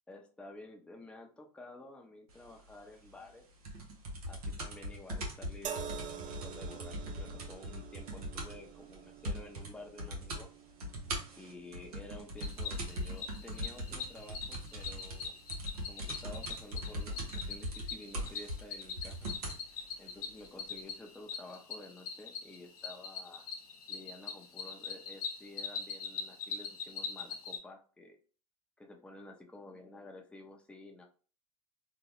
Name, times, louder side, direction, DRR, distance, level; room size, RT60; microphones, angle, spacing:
voice 1, 0.1-3.4 4.3-10.5 11.4-15.3 15.9-19.3 20.0-23.5 23.9-28.2 28.8-31.0, left 2 dB, 5° left, 2 dB, 0.6 m, -51 dB
sound 1, 3.6-8.7 8.9-9.0 9.2-9.7 10.0-10.4 10.8-19.6 20.4-20.5, equal, 90° right, 0.8 m, -40 dB
sound 2, 5.6-19.0 19.9-20.1, right 8 dB, 45° right, 0.5 m, -50 dB
Cricket, 12.4-27.6, left 6 dB, 75° left, 0.8 m, -43 dB
2.9 x 2.2 x 3.0 m, 0.39 s
hypercardioid pair, 90°, 19 cm